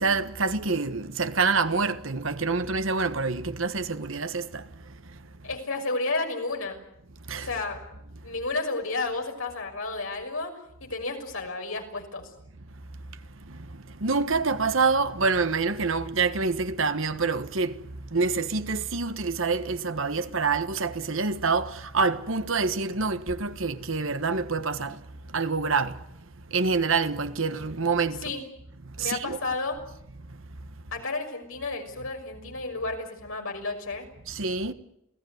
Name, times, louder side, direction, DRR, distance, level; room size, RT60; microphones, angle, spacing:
voice 1, 0.0-4.6 7.3-7.5 14.0-17.8 18.1-25.0 25.3-26.0 26.5-28.2 29.0-29.4 34.3-34.7, right 4 dB, 70° right, 1.4 m, -26 dB
voice 2, 5.4-6.8 7.5-7.8 8.2-10.5 10.8-12.3 28.2-28.4 29.0-29.8 30.9-34.1, left 3 dB, 80° left, 6.1 m, -31 dB
28.5 x 17.5 x 9.4 m
head